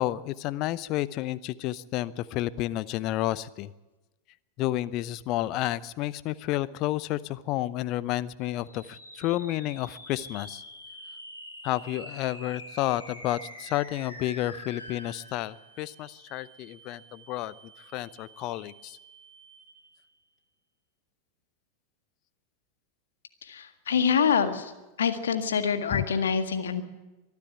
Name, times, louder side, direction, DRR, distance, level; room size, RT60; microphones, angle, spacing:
voice 1, 0.0-3.7 4.6-10.6 11.6-17.5 17.9-19.0 25.9-26.0, left 15 dB, 40° left, 18 dB, 0.7 m, -31 dB
sound 1, 8.6-20.0, equal, 90° left, 5.5 m, -47 dB
voice 2, 23.4-24.7 25.0-26.8, left 7 dB, 65° left, 8 dB, 1.8 m, -26 dB
23.5 x 12.0 x 9.3 m, 1.1 s
figure-of-eight pair, 90°, 0 cm